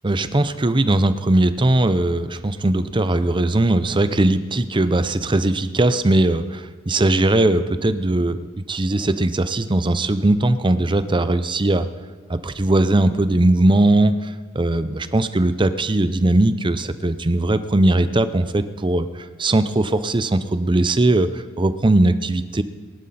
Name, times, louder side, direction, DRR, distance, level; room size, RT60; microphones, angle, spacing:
voice 1, 0.0-8.4 8.7-11.9 12.3-19.1 19.4-22.6, right 2 dB, 25° right, 12 dB, 0.7 m, -19 dB
23.0 x 11.5 x 4.3 m, 1.4 s
head